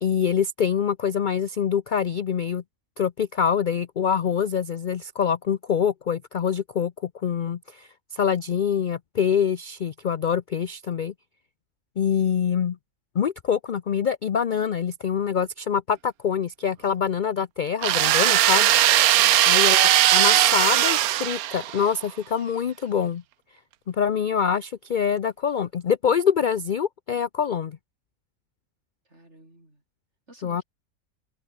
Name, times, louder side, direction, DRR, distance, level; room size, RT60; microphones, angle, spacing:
voice 1, 0.0-2.6 3.0-11.1 12.0-12.8 13.1-18.7 19.5-23.2 23.9-27.8 30.4-30.6, left 7 dB, 50° left, 0.5 m, -25 dB
sound 1, 17.8-21.9, right 13 dB, 90° right, 1.2 m, -19 dB
voice 2, 19.1-19.5 29.1-29.8 30.3-30.6, right 1 dB, 50° right, 7.7 m, -50 dB
omnidirectional pair, 1.5 m